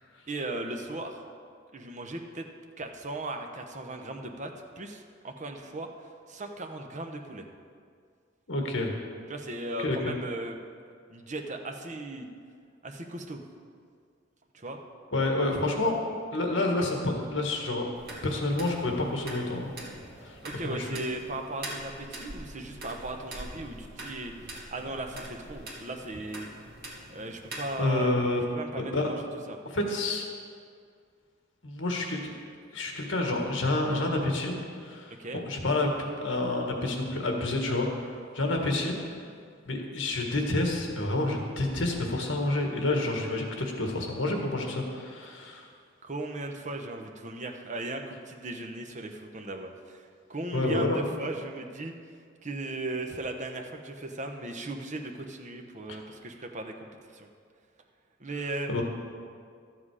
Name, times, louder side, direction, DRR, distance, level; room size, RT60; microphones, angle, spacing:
voice 1, 0.3-1.2 1.7-2.5 2.8-4.5 4.8-7.5 9.3-10.6 11.1-12.3 12.8-13.4 14.5-14.8 20.4-26.5 27.1-28.2 28.5-29.2 29.5-29.6 35.1-35.4 46.0-50.0 50.3-51.9 52.4-56.7 57.1-57.3 58.2-58.7, right 2 dB, 40° right, 4 dB, 0.9 m, -37 dB
voice 2, 8.5-8.9 9.8-10.2 15.1-17.9 18.2-19.7 20.2-21.0 27.8-28.4 28.8-29.1 29.7-30.3 31.6-32.3 32.7-34.6 34.8-39.0 39.6-45.7 50.5-51.0 55.9-56.0 58.7-58.8, left 2 dB, 70° left, 1 dB, 1.6 m, -29 dB
sound 1, 17.9-27.8, right 1 dB, 55° right, 2.0 m, -43 dB
12.5 x 7.6 x 4.9 m, 2.2 s
head